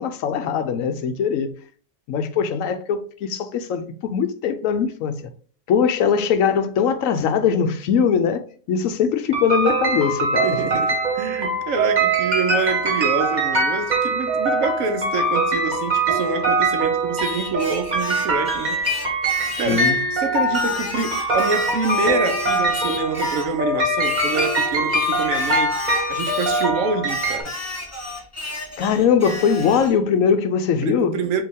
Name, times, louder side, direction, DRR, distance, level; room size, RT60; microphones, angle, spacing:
voice 1, 0.0-1.5 2.1-5.2 5.7-8.4 8.7-10.6 19.7-20.0 28.8-31.1, left 7 dB, 70° left, 0.9 m, -21 dB
sound 1, 9.3-27.4, right 2 dB, 30° right, 1.4 m, -22 dB
voice 2, 10.4-19.0 19.6-25.7 26.1-27.5 30.8-31.4, right 5 dB, 70° right, 1.0 m, -26 dB
Singing, 17.2-20.0 20.5-23.6 24.0-26.7 27.0-29.9, left 2 dB, 25° left, 0.3 m, -32 dB
4.6 x 2.9 x 3.5 m
omnidirectional pair, 1.5 m